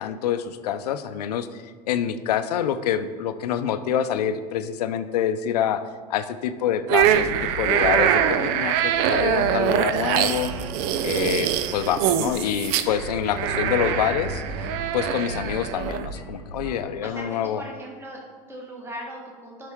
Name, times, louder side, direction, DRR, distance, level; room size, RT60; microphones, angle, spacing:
voice 1, 0.0-10.5 11.0-14.3 14.6-17.6, left 9 dB, 75° left, 11 dB, 0.6 m, -26 dB
sound 1, 6.9-16.1, right 10 dB, 55° right, 0.5 m, -24 dB
sound 2, 7.0-17.1, right 1 dB, 90° right, 1.6 m, -37 dB
voice 2, 13.7-14.1 17.0-19.7, equal, 10° right, -1 dB, 1.7 m, -39 dB
11.0 x 5.7 x 3.6 m, 1.5 s
hypercardioid pair, 90°, 21 cm